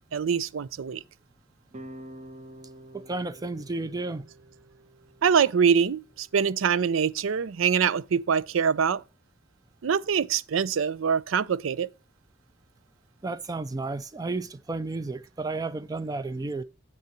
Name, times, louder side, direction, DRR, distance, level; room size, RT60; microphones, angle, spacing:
voice 1, 0.1-1.0 5.2-9.0 9.8-11.9, right 7 dB, 85° right, 0.4 m, -24 dB
sound 1, 1.7-6.8, right 1 dB, 35° right, 0.8 m, -48 dB
voice 2, 2.9-4.3 13.2-16.6, right 3 dB, 20° right, 0.4 m, -32 dB
8.5 x 6.6 x 4.4 m
head